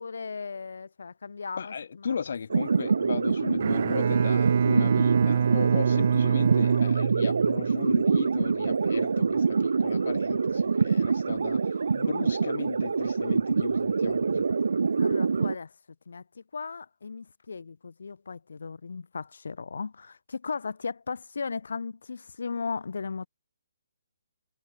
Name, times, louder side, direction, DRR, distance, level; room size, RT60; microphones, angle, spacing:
voice 1, 0.0-2.1 14.8-15.7 16.1-23.3, left 5 dB, 70° left, 5.6 m, -36 dB
voice 2, 1.6-11.6 11.9-14.5, left 6 dB, 50° left, 5.3 m, -36 dB
sound 1, 2.5-15.5, right 5 dB, 75° right, 2.7 m, -25 dB
Bowed string instrument, 3.5-7.9, right 7 dB, 40° right, 1.5 m, -25 dB
hypercardioid pair, 175°, 0 cm